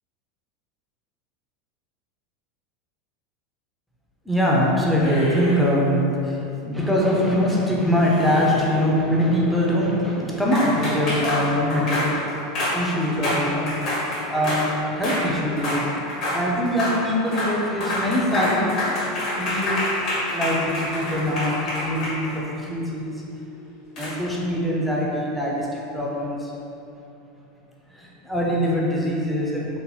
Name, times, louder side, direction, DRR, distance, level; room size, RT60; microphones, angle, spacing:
voice 1, 4.3-12.2 12.6-16.1 16.3-21.6 21.8-23.2 24.0-26.5 27.9-29.8, equal, ahead, -5 dB, 0.4 m, -23 dB
sound 1, 5.0-5.9 7.9-8.8 10.5-14.7 15.0-15.3 15.6-16.4 16.7-17.0 17.3-17.5 17.8-22.6 24.0-24.1, left 1 dB, 40° left, 0.8 m, -27 dB
sound 2, 18.3-24.4, left 4 dB, 75° left, 1.0 m, -42 dB
2.9 x 2.0 x 3.0 m, 2.9 s
supercardioid pair, 155°, 0 cm